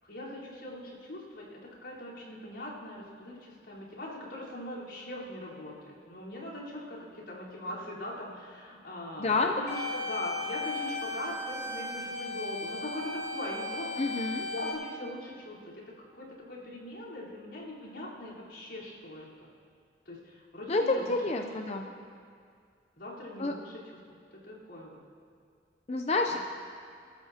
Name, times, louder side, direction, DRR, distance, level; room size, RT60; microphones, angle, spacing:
voice 1, 0.0-15.8 16.1-19.5 20.1-21.9 23.0-24.0 24.3-25.0, left 1 dB, 80° left, -7 dB, 4.0 m, -41 dB
voice 2, 9.2-9.5 14.0-14.4 20.7-21.9 23.4-23.5 25.9-26.5, left 3 dB, 35° left, 4 dB, 0.5 m, -28 dB
sound 1, 9.7-14.7, left 2 dB, 65° left, 3.8 m, -36 dB
28.5 x 13.0 x 2.9 m, 2.2 s
head